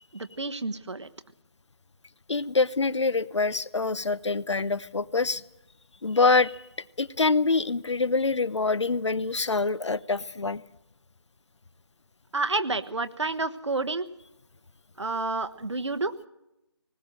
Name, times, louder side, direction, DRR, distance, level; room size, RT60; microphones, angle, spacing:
voice 1, 0.1-1.1 12.3-14.1 15.0-16.1, right 3 dB, 85° right, 9 dB, 1.3 m, -29 dB
voice 2, 2.3-5.4 6.0-6.6 7.0-10.6, left 3 dB, 85° left, 19 dB, 0.8 m, -25 dB
20.0 x 18.5 x 7.7 m, 0.91 s
figure-of-eight pair, 170°, 15 cm